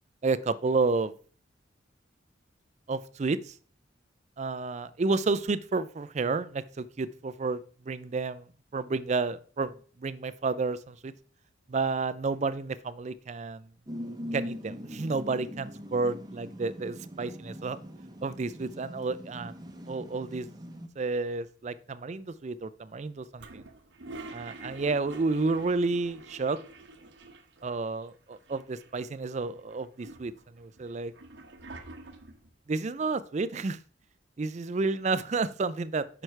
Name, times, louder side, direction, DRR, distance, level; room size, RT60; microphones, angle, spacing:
voice 1, 0.2-1.1 2.9-3.6 4.4-11.1 11.7-13.7 14.3-17.8 18.2-19.6 19.9-20.5 21.0-23.6 24.3-26.6 27.6-31.1 32.7-33.8 34.4-36.2, right 3 dB, 35° right, 16 dB, 0.4 m, -31 dB
sound 1, 13.9-20.9, equal, 20° right, 0.8 m, -41 dB
Toilet flush, 23.4-27.7 28.0-28.1 28.3-29.2 29.7-32.5, right 2 dB, 60° right, 0.9 m, -47 dB
9.0 x 6.0 x 3.3 m, 0.42 s
head